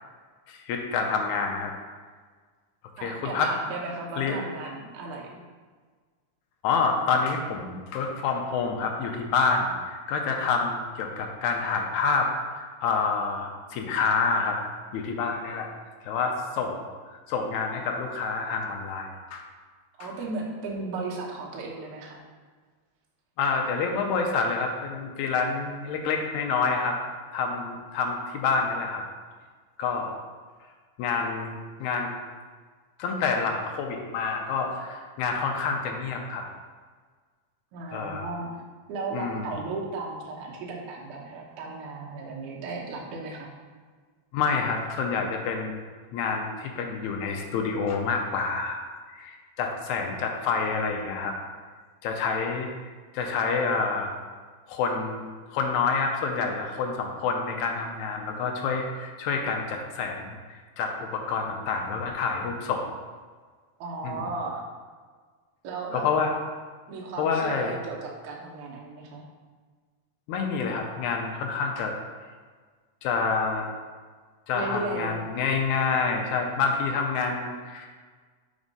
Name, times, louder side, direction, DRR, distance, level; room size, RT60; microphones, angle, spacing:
voice 1, 0.5-1.7 3.0-3.5 4.2-4.4 6.6-12.3 12.6-14.6 14.9-15.7 16.0-16.8 17.1-19.4 20.0-20.1 23.4-27.0 27.3-29.0 29.8-30.1 31.0-32.1 33.0-36.4 37.9-38.3 39.1-39.5 44.3-45.8 46.1-48.8 49.1-51.3 52.0-54.1 54.7-55.2 55.5-62.8 64.0-64.2 65.9-66.3 67.2-67.8 70.3-71.9 73.0-73.7 74.5-77.9, left 5 dB, 85° left, 2 dB, 1.6 m, -28 dB
voice 2, 3.0-5.4 20.0-22.2 37.7-38.5 38.9-43.5 63.8-64.6 65.6-66.1 66.9-69.3 74.5-75.2, right 3 dB, 75° right, -2 dB, 2.1 m, -35 dB
5.2 x 3.5 x 5.2 m, 1.5 s
omnidirectional pair, 4.0 m